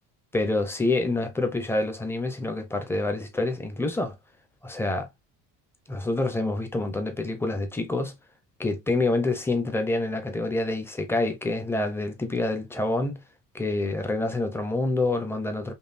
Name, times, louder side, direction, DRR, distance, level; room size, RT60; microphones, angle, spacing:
voice 1, 0.3-4.1 4.6-5.1 5.9-8.1 8.6-13.2 13.5-15.7, left 2 dB, 5° left, 0.5 m, -27 dB
5.3 x 2.3 x 2.5 m
cardioid pair, 175°, 35 cm